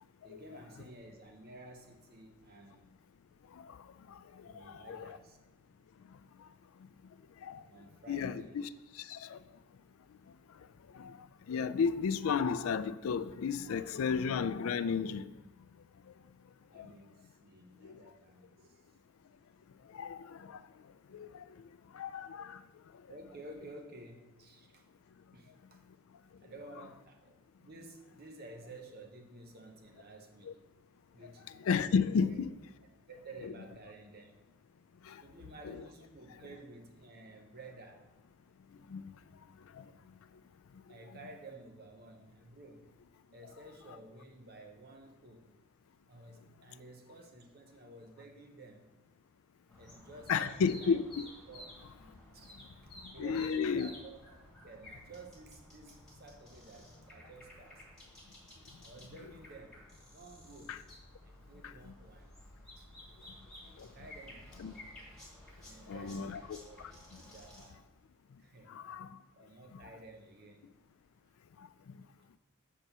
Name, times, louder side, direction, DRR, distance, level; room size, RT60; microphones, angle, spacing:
voice 1, 0.2-2.9 4.4-5.4 7.7-8.6 16.7-18.9 23.1-24.9 25.3-25.8 26.4-30.6 31.1-31.5 32.1-32.4 33.1-34.3 35.2-38.1 40.9-42.9 43.3-45.5 46.1-48.9 49.8-51.0 51.5-51.7 52.3-52.5 52.8-54.4 54.6-57.9 58.8-59.8 60.1-60.8 61.2-62.3 62.8-62.9 63.9-64.9 65.6-67.8 68.4-68.8 69.3-70.7, right 2 dB, 45° right, 0.7 m, -53 dB
voice 2, 4.7-5.2 7.4-7.6 8.1-8.7 9.0-9.4 10.9-11.2 11.5-15.3 16.8-16.9 17.8-17.9 19.9-20.6 21.1-21.4 21.9-22.6 30.5-30.6 31.6-32.5 33.4-33.5 35.1-35.2 35.6-35.8 38.9-39.0 39.8-39.9 50.3-51.2 53.2-53.9 60.7-60.8 61.6-61.7 63.8-63.9 64.6-64.7 65.9-66.6 68.7-69.1, left 6 dB, 70° left, 0.4 m, -33 dB
sound 1, 49.7-67.7, left 1 dB, 5° left, 2.2 m, -54 dB
7.2 x 4.5 x 6.6 m
head